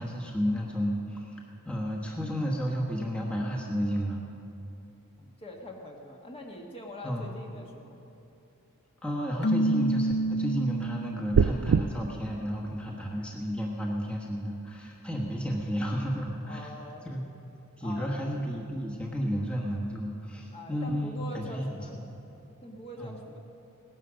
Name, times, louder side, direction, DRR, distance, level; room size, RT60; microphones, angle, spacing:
voice 1, 0.0-4.3 7.0-7.3 9.0-16.7 17.0-17.2 17.8-22.0 23.0-23.2, equal, 5° left, -3 dB, 1.3 m, -32 dB
voice 2, 5.2-8.0 16.5-17.1 17.8-18.2 20.5-22.0 22.6-23.4, left 1 dB, 25° left, 0 dB, 1.4 m, -43 dB
Keyboard (musical), 9.4-11.4, right 1 dB, 50° left, 0.6 m, -28 dB
sound 1, 11.3-11.8, right 6 dB, 80° right, 0.4 m, -22 dB
18.0 x 11.0 x 6.3 m, 2.9 s
head